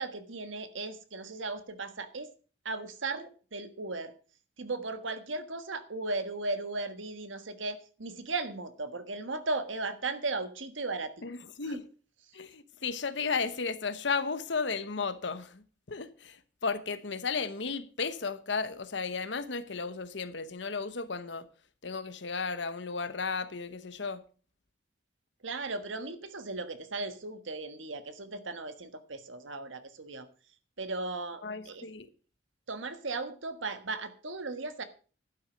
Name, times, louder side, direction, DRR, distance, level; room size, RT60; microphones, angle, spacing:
voice 1, 0.0-2.3 2.6-4.1 4.6-11.1 11.7-11.8 25.4-30.3 30.8-31.9 32.7-34.8, right 3 dB, 90° right, 1.5 m, -36 dB
voice 2, 11.2-11.8 12.3-21.5 21.8-24.2 31.4-32.1, left 4 dB, 70° left, 1.0 m, -34 dB
12.0 x 9.5 x 5.1 m
head